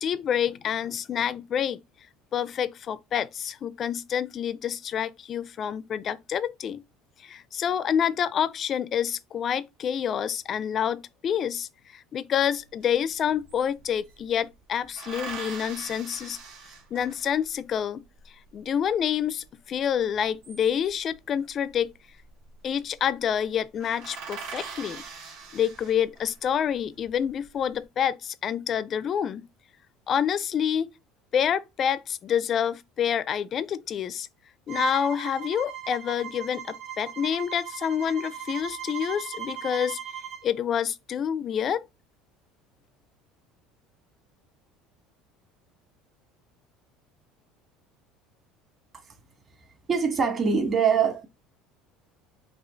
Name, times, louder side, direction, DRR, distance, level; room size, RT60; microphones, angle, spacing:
voice 1, 0.0-1.8 2.3-6.8 7.2-16.4 16.9-18.0 18.5-21.9 22.6-25.0 25.5-29.5 30.1-30.9 31.3-34.3 34.7-40.0 40.4-41.8, left 8 dB, 40° left, 0.4 m, -28 dB
sound 1, 12.8-12.9 13.1-14.2 15.0-17.5 20.1-21.1 22.3-22.7 23.0-23.1 23.4-23.5 23.8-26.4 26.9-27.6, right 5 dB, 80° right, 2.5 m, -41 dB
Bowed string instrument, 34.7-40.5, right 10 dB, 55° right, 2.1 m, -38 dB
voice 2, 49.9-51.3, right 6 dB, 30° right, 1.5 m, -23 dB
5.6 x 2.4 x 3.9 m
supercardioid pair, 125°, 0 cm